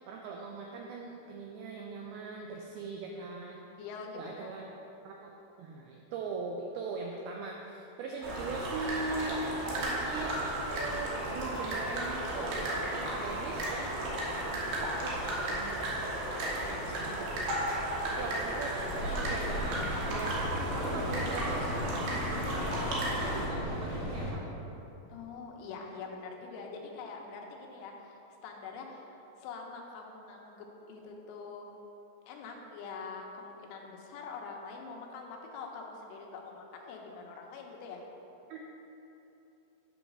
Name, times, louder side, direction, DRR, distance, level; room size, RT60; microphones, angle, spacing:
voice 1, 0.0-3.6 4.1-4.7 5.0-5.3 5.6-14.1 14.5-16.4 16.7-17.6 18.1-22.0 22.7-24.6 38.5-38.6, right 3 dB, 90° right, 0 dB, 2.2 m, -41 dB
voice 2, 3.8-4.6 25.1-31.8 32.3-38.0, left 4 dB, 85° left, 1 dB, 3.0 m, -44 dB
sound 1, 8.2-23.5, right 1 dB, 70° right, 2.8 m, -34 dB
Mechanical fan, 18.8-24.3, equal, 55° left, 2.5 m, -36 dB
8.9 x 4.0 x 5.9 m, 3.0 s
omnidirectional pair, 5.0 m